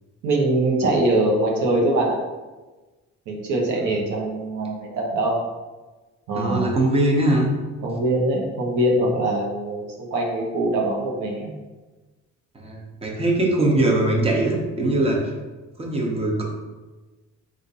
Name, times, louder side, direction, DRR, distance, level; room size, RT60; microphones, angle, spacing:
voice 1, 0.2-2.2 3.3-5.4 6.3-6.7 7.8-11.5, right 1 dB, 85° right, -2 dB, 1.0 m, -23 dB
voice 2, 6.3-7.5 12.5-15.3 15.8-16.4, right 1 dB, 20° right, -1 dB, 0.9 m, -21 dB
3.7 x 2.6 x 4.1 m, 1.2 s
cardioid pair, 90°, 30 cm